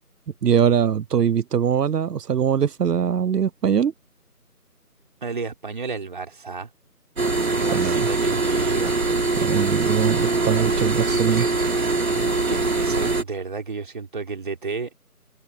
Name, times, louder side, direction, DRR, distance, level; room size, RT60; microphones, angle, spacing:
voice 1, 0.4-3.9 7.7-8.1 9.4-11.5, right 8 dB, 85° right, 0.6 m, -22 dB
voice 2, 5.2-6.7 7.5-9.0 11.3-11.9 12.3-14.9, right 4 dB, 30° right, 4.1 m, -32 dB
sound 1, 7.2-13.2, right 3 dB, 60° right, 2.6 m, -22 dB
figure-of-eight pair, 170°, 47 cm